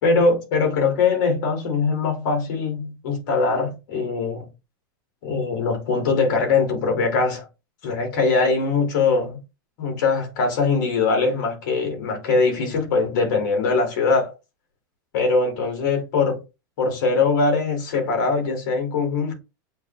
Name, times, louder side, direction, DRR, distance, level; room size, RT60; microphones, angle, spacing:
voice 1, 0.0-4.5 5.2-7.5 7.8-9.4 9.8-14.3 15.1-16.4 16.8-19.3, left 4 dB, 60° left, 2.4 m, -22 dB
8.3 x 2.8 x 2.2 m
supercardioid pair, 135°, 11 cm